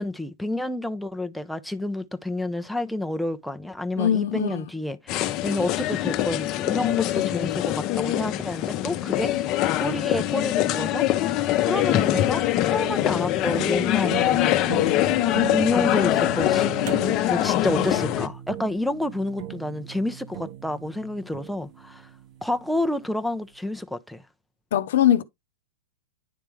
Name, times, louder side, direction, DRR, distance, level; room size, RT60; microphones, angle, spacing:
voice 1, 0.0-9.3 9.8-11.0 11.6-14.9 15.5-16.9 17.3-22.1 22.4-24.2, left 1 dB, ahead, 0.6 m, -29 dB
voice 2, 4.0-4.6 24.7-25.2, left 10 dB, 70° left, 0.7 m, -21 dB
sound 1, 5.1-18.3, left 13 dB, 40° left, 0.8 m, -23 dB
sound 2, 11.7-22.9, right 11 dB, 55° right, 1.1 m, -38 dB
10.0 x 3.4 x 3.1 m
hypercardioid pair, 135°, 0 cm